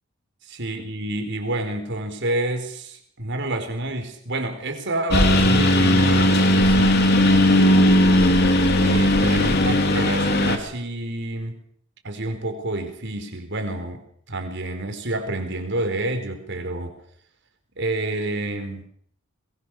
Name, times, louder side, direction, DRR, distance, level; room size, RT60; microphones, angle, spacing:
voice 1, 0.5-7.9 8.8-11.6 12.0-16.9 17.8-18.9, right 1 dB, 60° right, 6 dB, 4.6 m, -29 dB
Engine, 5.1-10.6, left 1 dB, 50° left, 3.3 m, -17 dB
22.0 x 21.5 x 6.7 m, 0.64 s
head